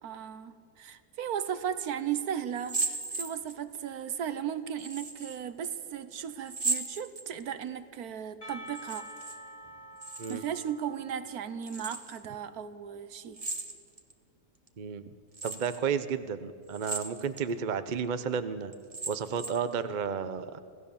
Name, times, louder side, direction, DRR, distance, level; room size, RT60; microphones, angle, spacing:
voice 1, 0.0-9.1 10.3-13.4, right 9 dB, 65° right, 13 dB, 1.3 m, -36 dB
sound 1, 2.5-3.8 4.8-5.4 6.5-7.6 8.7-9.4 9.7-10.6 11.6-12.2 13.3-14.1 14.7-14.8 15.3-15.8 16.7-17.5 17.9-18.0 18.7-19.7, right 3 dB, 25° right, 1.1 m, -36 dB
Percussion, 8.4-12.3, equal, 45° left, 6.3 m, -48 dB
voice 2, 15.4-18.7 19.1-20.6, right 6 dB, 45° right, 11 dB, 0.6 m, -32 dB
26.5 x 16.5 x 7.2 m, 2.4 s
omnidirectional pair, 1.8 m